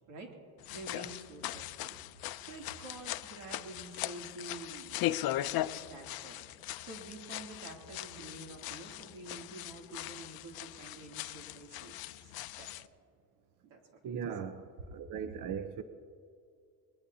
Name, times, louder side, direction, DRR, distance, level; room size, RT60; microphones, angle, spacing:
sound 1, 0.6-12.9, left 15 dB, 55° left, 0.5 m, -39 dB
voice 1, 0.7-6.5 6.8-12.3 12.6-12.7 13.6-13.8 14.0-14.2, right 2 dB, 90° right, 2.8 m, -49 dB
voice 2, 14.0-15.8, right 7 dB, 50° right, 0.8 m, -39 dB
22.0 x 20.0 x 2.8 m
cardioid pair, 115°, 43 cm